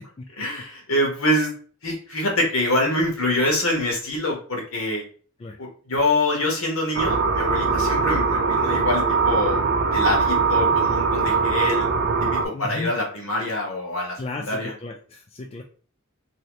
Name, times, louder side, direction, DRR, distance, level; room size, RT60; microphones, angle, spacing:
voice 1, 0.4-1.5 1.8-5.0 5.6-9.6 9.9-11.9 12.2-14.7, left 1 dB, 70° left, 0 dB, 1.1 m, -25 dB
sound 1, 6.9-12.4, right 4 dB, 55° right, 0.4 m, -21 dB
voice 2, 12.5-12.9 14.2-15.6, left 3 dB, 25° left, 2 dB, 0.3 m, -34 dB
2.7 x 2.7 x 3.1 m, 0.41 s
head